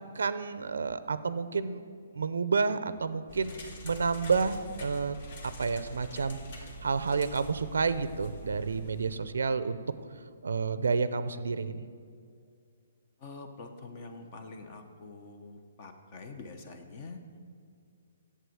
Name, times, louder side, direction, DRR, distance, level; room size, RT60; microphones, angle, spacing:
voice 1, 0.0-1.8 2.1-5.2 5.6-9.8 10.4-11.8, right 4 dB, 85° right, 13 dB, 0.5 m, -30 dB
sound 1, 3.3-9.2, right 1 dB, 50° left, 1.7 m, -45 dB
voice 2, 13.2-17.2, left 3 dB, 35° left, 6 dB, 0.9 m, -45 dB
8.1 x 7.8 x 7.8 m, 2.2 s
hypercardioid pair, 155°, 0 cm